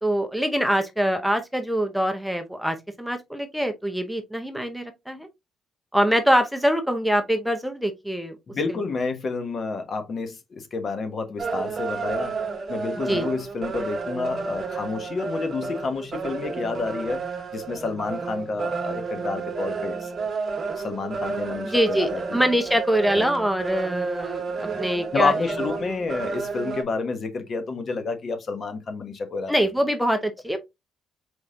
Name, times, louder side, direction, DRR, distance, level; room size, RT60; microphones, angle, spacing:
voice 1, 0.0-5.3 5.9-8.4 8.7-8.8 13.1-13.3 21.6-25.7 29.5-30.6, equal, ahead, 0.8 m, -24 dB
voice 2, 8.5-12.4 12.7-17.2 17.5-20.1 20.8-22.4 23.1-23.3 24.6-24.8 25.1-29.6, left 4 dB, 50° left, 1.2 m, -29 dB
sound 1, 11.4-26.8, right 4 dB, 45° right, 1.5 m, -31 dB
4.6 x 4.2 x 2.6 m
cardioid pair, 90°, 0 cm